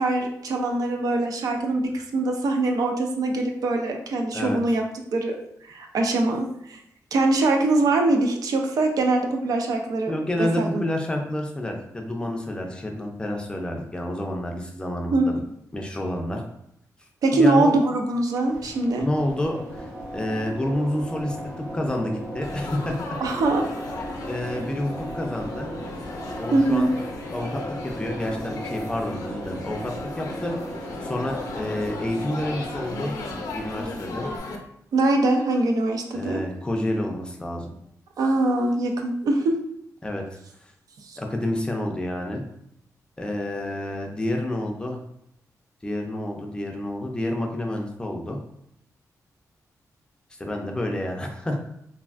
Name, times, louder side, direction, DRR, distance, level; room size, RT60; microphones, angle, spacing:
voice 1, 0.0-4.8 5.1-5.4 5.7-6.8 7.1-10.8 15.1-15.4 17.2-19.1 23.2-23.7 26.5-26.9 34.9-36.4 38.2-39.6 41.1-41.2, right 2 dB, 75° right, 3 dB, 0.4 m, -23 dB
voice 2, 10.1-15.4 15.7-16.4 17.3-17.8 19.0-19.9 20.1-23.0 24.2-25.7 26.4-26.9 27.3-30.5 31.0-33.1 33.5-34.3 36.1-37.7 40.0-40.2 41.2-42.4 43.2-45.0 45.8-48.4 50.4-51.6, left 1 dB, 15° left, 1 dB, 0.4 m, -29 dB
sound 1, 18.4-34.4, right 1 dB, 30° right, 1.1 m, -37 dB
Laughter / Chatter / Crowd, 22.4-34.6, left 3 dB, 90° left, 0.5 m, -37 dB
3.3 x 2.3 x 2.4 m, 0.73 s
wide cardioid pair, 150°, 6 cm